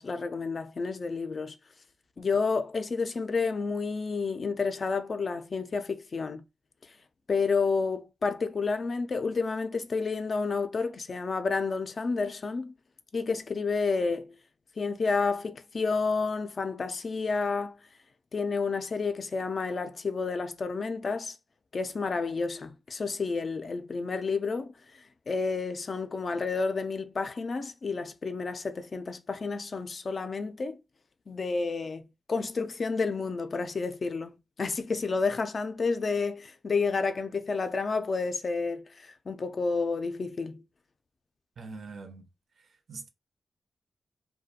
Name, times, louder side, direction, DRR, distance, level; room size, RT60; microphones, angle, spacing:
voice 1, 0.0-1.6 2.2-6.4 7.3-12.7 13.1-14.3 14.8-17.8 18.3-21.4 21.7-30.8 31.3-40.6, left 4 dB, 50° left, 0.3 m, -30 dB
voice 2, 41.6-42.2 42.9-43.1, right 4 dB, 65° right, 0.5 m, -42 dB
2.4 x 2.2 x 2.6 m
cardioid pair, 90°, 0 cm